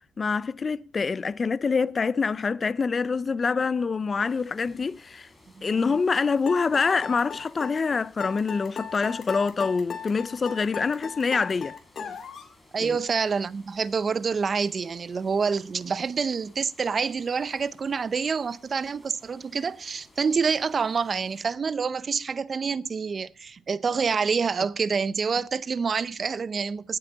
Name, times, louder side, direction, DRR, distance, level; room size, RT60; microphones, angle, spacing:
voice 1, 0.2-5.3 5.6-11.7 12.8-13.0, left 5 dB, 35° left, 0.4 m, -26 dB
sound 1, 4.3-21.4, left 2 dB, 15° left, 4.1 m, -58 dB
voice 2, 5.6-5.9 12.7-27.0, right 5 dB, 40° right, 0.6 m, -27 dB
sound 2, 6.5-12.5, left 6 dB, 55° left, 2.3 m, -37 dB
18.5 x 7.8 x 3.9 m
cardioid pair, 90°, 0 cm